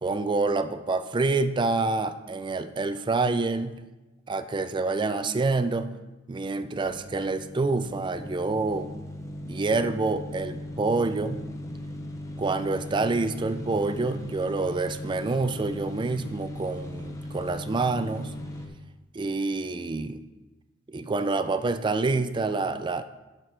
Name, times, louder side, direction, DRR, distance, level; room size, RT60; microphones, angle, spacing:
voice 1, 0.0-3.8 4.3-6.0 6.3-8.9 9.5-11.5 12.4-18.4 19.1-20.2 20.9-23.0, right 3 dB, 25° right, 11 dB, 0.4 m, -27 dB
sound 1, 6.8-18.7, left 1 dB, 15° left, 0.8 m, -38 dB
11.0 x 6.1 x 3.3 m, 1.1 s
head